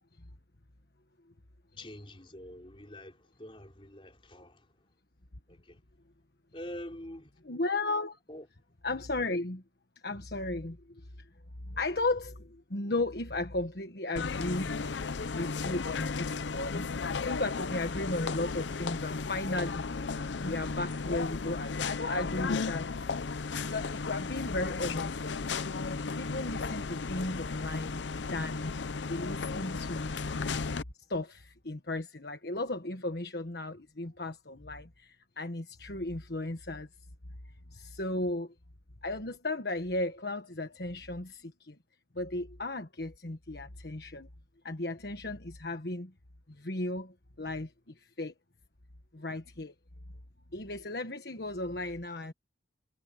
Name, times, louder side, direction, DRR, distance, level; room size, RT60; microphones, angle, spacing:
voice 1, 1.8-4.6 5.5-5.8 6.5-7.3 8.3-8.5, left 1 dB, 30° left, 4.1 m, -45 dB
voice 2, 7.4-8.2 8.8-9.6 10.0-11.1 11.7-14.7 15.3-19.9 20.4-22.9 23.3-25.2 26.1-28.0 28.3-28.7 29.1-30.3 31.1-36.9 37.7-38.5 39.0-41.8 42.1-44.3 44.6-46.1 46.5-48.3 49.1-49.7 50.5-52.3, left 2 dB, 60° left, 1.5 m, -35 dB
sound 1, 14.2-30.8, left 4 dB, 85° left, 0.6 m, -34 dB
head